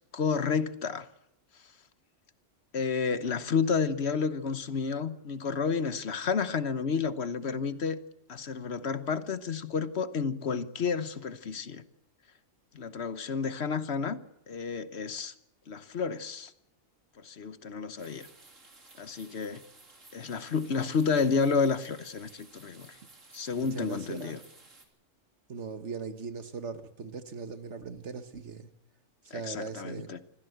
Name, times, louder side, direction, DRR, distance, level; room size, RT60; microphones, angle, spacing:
voice 1, 0.1-1.1 2.7-8.0 8.3-11.8 12.7-14.2 14.5-15.3 15.7-16.5 17.2-18.3 19.0-19.6 20.1-22.9 23.3-24.4 29.3-30.2, left 5 dB, 60° left, 1.2 m, -30 dB
sound 1, 18.0-24.9, right 3 dB, 85° right, 3.5 m, -55 dB
voice 2, 23.5-24.4 25.5-28.7 29.3-30.1, right 5 dB, 65° right, 1.7 m, -39 dB
25.5 x 15.5 x 7.9 m
omnidirectional pair, 1.3 m